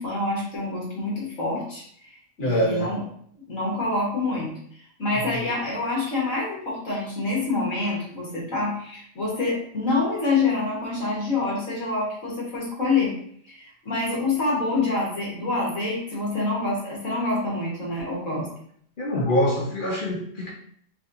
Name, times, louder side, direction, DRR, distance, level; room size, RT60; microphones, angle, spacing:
voice 1, 0.0-3.0 3.5-4.5 5.0-13.1 13.4-18.5, left 3 dB, 65° left, -5 dB, 1.8 m, -26 dB
voice 2, 2.4-2.9 5.1-5.2 18.4-18.5 19.0-20.5, equal, 45° left, -3 dB, 0.8 m, -24 dB
4.6 x 2.7 x 2.6 m, 0.63 s
omnidirectional pair, 1.4 m